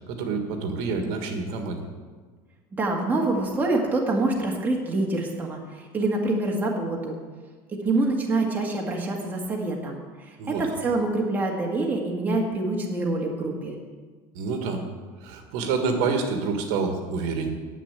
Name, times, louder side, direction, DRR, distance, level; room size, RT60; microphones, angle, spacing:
voice 1, 0.1-1.8 10.4-10.6 14.3-14.8 15.2-17.5, right 4 dB, 65° right, 5 dB, 1.7 m, -27 dB
voice 2, 2.7-7.2 7.8-13.8, right 2 dB, 15° right, -1 dB, 1.7 m, -26 dB
10.0 x 7.5 x 8.8 m, 1.5 s
cardioid pair, 165°, 12 cm